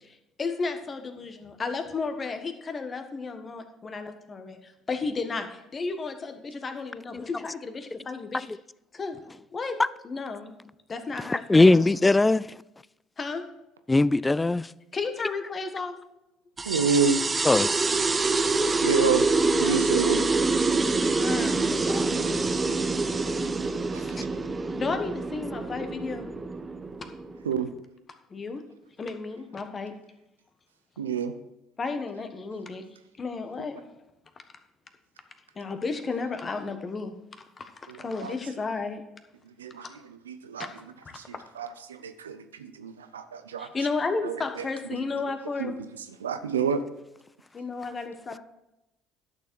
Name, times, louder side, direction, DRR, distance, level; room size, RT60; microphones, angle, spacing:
voice 1, 0.0-8.5 8.9-9.2 9.5-9.8 10.0-10.5 10.9-11.9 13.2-13.4 14.9-16.0 19.6-20.2 21.1-22.4 24.8-26.3 28.3-28.6 29.0-29.9 31.8-32.8 33.2-33.9 35.5-37.1 37.6-39.0 39.8-39.9 40.6-40.7 41.0-41.2 43.6-45.8 47.5-48.4, left 4 dB, 35° left, 1.4 m, -33 dB
voice 2, 11.5-12.4 13.9-14.7 17.4-17.7, left 2 dB, 15° left, 0.3 m, -19 dB
sound 1, 16.6-27.6, right 3 dB, 25° right, 0.7 m, -26 dB
voice 3, 16.7-17.2 18.8-19.2 19.6-20.2 27.5-27.7 31.0-31.3 38.2-38.3 39.6-39.8 40.3-40.6 41.6-41.7 42.0-42.4 42.8-43.7 44.2-44.4 45.6-45.7 46.2-46.8, right 6 dB, 85° right, 0.6 m, -27 dB
11.5 x 6.8 x 4.6 m
hypercardioid pair, 55°, 0 cm